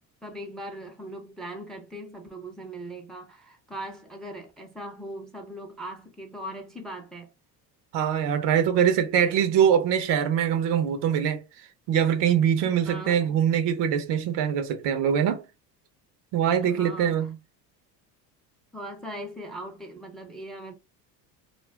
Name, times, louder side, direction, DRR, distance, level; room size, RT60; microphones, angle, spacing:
voice 1, 0.2-7.3 12.6-13.4 16.6-17.3 18.7-20.7, right 1 dB, ahead, 0.6 m, -39 dB
voice 2, 7.9-11.4 11.9-15.4 16.3-17.4, right 8 dB, 55° right, 0.8 m, -23 dB
2.4 x 2.1 x 3.4 m
hypercardioid pair, 75°, 50 cm